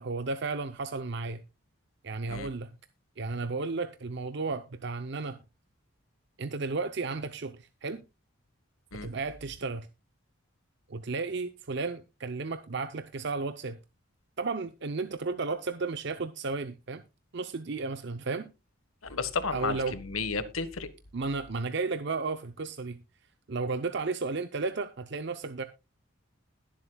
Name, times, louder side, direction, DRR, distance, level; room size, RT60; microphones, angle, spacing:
voice 1, 0.0-1.4 2.0-2.8 3.2-5.4 6.4-8.0 9.0-9.9 10.9-13.8 14.4-17.0 17.3-18.5 19.5-20.0 21.1-23.0 23.5-25.6, right 3 dB, 55° right, 0.6 m, -33 dB
voice 2, 19.0-20.9, left 4 dB, 90° left, 1.4 m, -33 dB
20.5 x 7.5 x 2.3 m
head